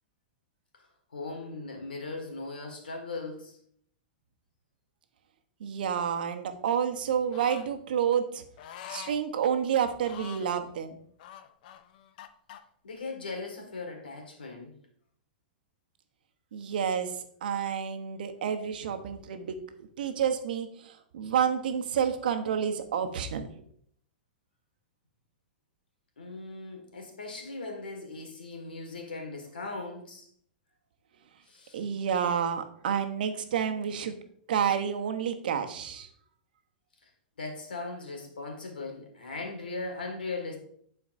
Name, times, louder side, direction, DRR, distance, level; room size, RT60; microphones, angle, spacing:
voice 1, 1.1-3.6 12.8-14.7 26.2-30.3 31.5-31.8 37.0-37.1 37.4-40.6, left 3 dB, 90° left, 2 dB, 1.9 m, -39 dB
voice 2, 5.6-8.4 8.9-11.0 16.5-23.5 31.7-34.2 34.5-36.1, right 8 dB, 70° right, 7 dB, 0.9 m, -29 dB
sound 1, 7.3-7.7 8.6-9.2 10.0-10.5 11.2-12.6, left 10 dB, 60° left, 0.6 m, -45 dB
11.0 x 4.5 x 2.6 m, 0.64 s
hypercardioid pair, 110°, 5 cm